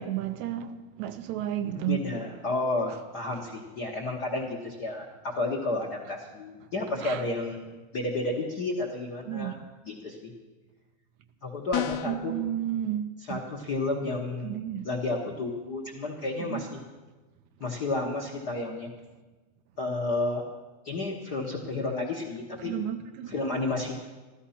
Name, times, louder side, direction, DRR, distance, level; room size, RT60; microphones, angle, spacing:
voice 1, 0.0-2.0 7.0-7.3 9.3-9.6 12.1-13.5 14.4-14.8 16.4-16.7 22.7-23.3, right 12 dB, 75° right, 1.9 m, -32 dB
voice 2, 1.6-7.7 7.9-9.5 9.9-10.3 11.4-12.3 13.3-14.5 14.8-16.8 17.6-18.9 19.8-20.4 20.8-22.7 23.3-24.0, left 2 dB, 50° left, 1.2 m, -31 dB
sound 1, 11.7-12.3, left 12 dB, 75° left, 1.7 m, -30 dB
14.0 x 13.0 x 5.7 m
omnidirectional pair, 3.5 m